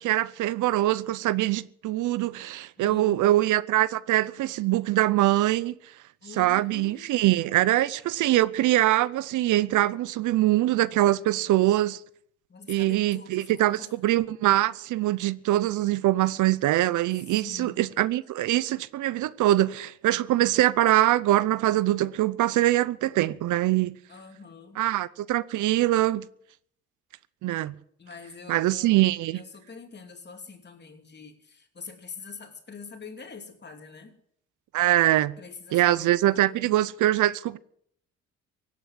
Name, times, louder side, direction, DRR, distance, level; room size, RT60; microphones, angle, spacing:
voice 1, 0.0-5.7 6.4-12.0 12.7-24.0 24.8-26.2 27.4-27.7 28.5-29.4 34.7-35.3 35.7-37.6, right 15 dB, 80° right, 0.7 m, -23 dB
voice 2, 2.8-3.5 6.2-7.1 12.5-13.9 17.4-17.8 24.1-24.8 28.0-29.0 29.3-34.1 35.4-36.8, left 5 dB, 35° left, 3.0 m, -45 dB
17.0 x 9.1 x 7.7 m
cardioid pair, 90°, 30 cm